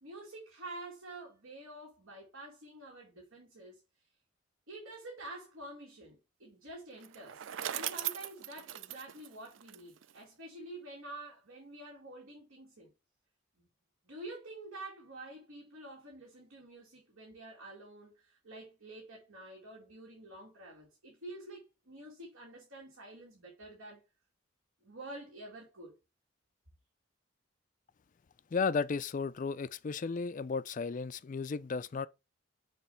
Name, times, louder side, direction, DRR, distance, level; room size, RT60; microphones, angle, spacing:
voice 1, 0.0-3.8 4.7-12.9 13.6-13.7 14.1-24.0 24.8-26.0, right 2 dB, 80° right, 2.5 m, -48 dB
Bicycle, 7.0-10.2, right 12 dB, 65° right, 0.4 m, -39 dB
voice 2, 28.5-32.1, left 5 dB, 40° left, 0.3 m, -34 dB
6.8 x 3.0 x 5.6 m
head